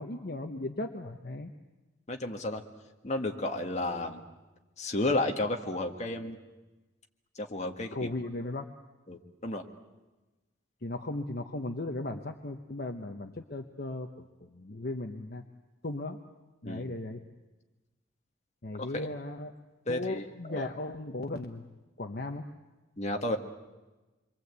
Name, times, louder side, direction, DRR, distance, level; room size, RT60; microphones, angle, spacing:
voice 1, 0.0-1.5 7.9-8.7 10.8-14.1 14.5-15.4 15.8-16.2 16.6-17.2 18.6-19.5 19.9-21.6 22.0-22.4, left 2 dB, 55° left, 5 dB, 1.0 m, -36 dB
voice 2, 2.1-2.6 3.0-4.2 4.8-6.4 7.3-8.1 9.1-9.6 16.6-16.9 18.8-19.1 19.8-20.7 23.0-23.4, left 2 dB, 35° left, 3 dB, 1.7 m, -32 dB
27.5 x 23.0 x 8.2 m, 1.2 s
head